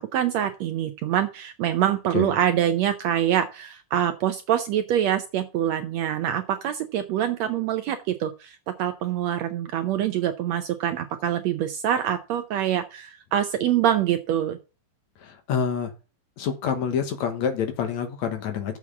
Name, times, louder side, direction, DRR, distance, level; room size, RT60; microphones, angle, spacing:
voice 1, 0.0-14.6, right 10 dB, 75° right, 9 dB, 1.6 m, -25 dB
voice 2, 15.2-15.9 16.4-18.8, left 7 dB, 65° left, 7 dB, 2.4 m, -27 dB
7.2 x 6.1 x 7.0 m, 0.31 s
omnidirectional pair, 3.7 m